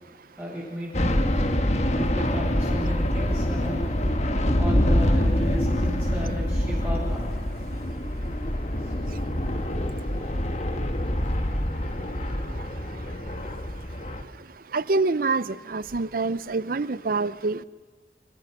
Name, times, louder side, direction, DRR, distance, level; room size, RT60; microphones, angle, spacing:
voice 1, 0.4-1.5 1.9-3.9 4.6-7.2, equal, 15° right, -6 dB, 7.9 m, -34 dB
sound 1, 0.9-14.2, left 1 dB, 40° left, 1.5 m, -25 dB
voice 2, 14.7-15.4 15.7-17.6, right 3 dB, 50° right, 18 dB, 0.6 m, -25 dB
29.5 x 15.0 x 6.4 m, 1.4 s
head